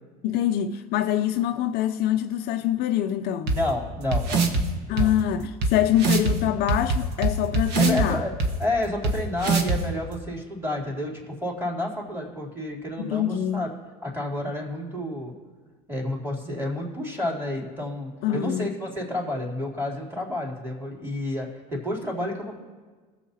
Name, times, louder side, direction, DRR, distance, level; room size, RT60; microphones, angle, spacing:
voice 1, 0.2-3.5 4.9-8.2 13.0-13.7 18.2-18.7, left 11 dB, 55° left, 0.5 m, -25 dB
voice 2, 3.5-4.5 4.9-5.1 7.8-8.3 8.6-13.7 14.0-15.3 15.9-22.6, left 1 dB, 10° right, 3.3 m, -30 dB
sound 1, 3.5-3.6 4.1-4.6 5.0-5.1 5.6-5.7 6.0-6.3 6.7-8.1 8.4-8.5 9.0-9.1 9.4-9.8, right 3 dB, 55° right, 1.4 m, -22 dB
20.0 x 7.2 x 2.8 m
hypercardioid pair, 85°, 20 cm